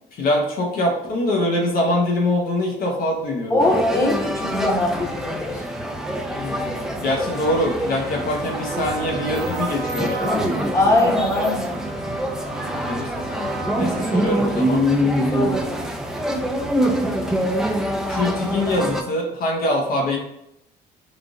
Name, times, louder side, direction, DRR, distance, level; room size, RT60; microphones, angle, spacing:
voice 1, 0.1-3.6 6.3-10.5 12.8-14.8 18.1-20.2, left 1 dB, 60° left, 0 dB, 0.9 m, -24 dB
voice 2, 3.5-5.6 10.7-11.8 15.3-15.9, left 2 dB, 15° left, -2 dB, 1.0 m, -21 dB
sound 1, 3.6-19.0, equal, 5° right, 0.4 m, -25 dB
Trumpet, 8.4-15.2, right 5 dB, 60° right, 1.0 m, -35 dB
3.5 x 2.4 x 3.8 m, 0.80 s
cardioid pair, 110°, 17 cm